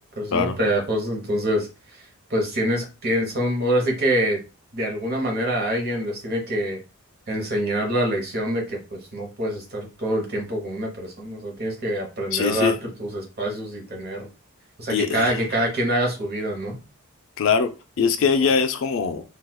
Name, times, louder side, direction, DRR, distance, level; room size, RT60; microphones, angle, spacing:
voice 1, 0.2-1.7 2.3-4.4 4.7-6.8 7.3-14.3 14.8-16.8, right 1 dB, 45° right, 1.0 m, -25 dB
voice 2, 12.3-12.8 14.9-15.3 17.4-19.2, left 5 dB, 60° left, 0.4 m, -22 dB
4.2 x 2.3 x 2.2 m
head